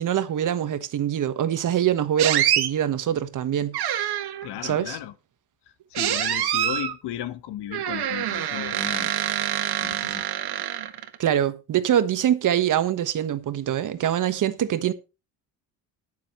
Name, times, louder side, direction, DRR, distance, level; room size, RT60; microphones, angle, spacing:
voice 1, 0.0-4.1 4.6-5.0 11.2-14.9, right 10 dB, 45° right, 1.3 m, -24 dB
sound 1, 2.2-2.7 3.7-4.5 5.9-6.9 7.7-11.2, right 11 dB, 65° right, 1.9 m, -26 dB
voice 2, 4.4-5.1 5.9-9.4 9.8-10.2, left 12 dB, 70° left, 1.3 m, -35 dB
20.5 x 6.9 x 3.1 m
cardioid pair, 145°, 42 cm